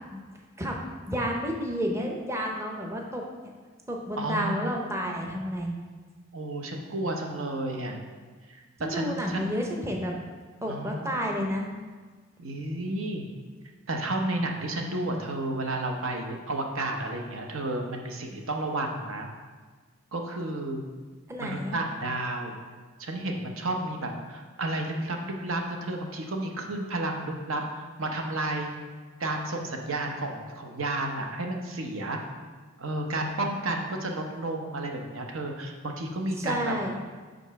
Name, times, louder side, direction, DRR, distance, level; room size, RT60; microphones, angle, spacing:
voice 1, 1.1-3.2 3.9-5.7 8.8-10.1 10.6-11.7 21.3-21.8 36.4-37.0, equal, 15° right, 0 dB, 0.6 m, -30 dB
voice 2, 4.2-5.2 6.3-8.0 8.5-8.6 8.9-9.5 10.7-11.2 12.4-13.3 13.9-19.3 20.1-20.8 21.4-22.6 23.0-28.7 29.2-32.2 32.8-36.7, right 2 dB, 85° right, 2 dB, 0.8 m, -32 dB
5.3 x 3.9 x 5.7 m, 1.4 s
head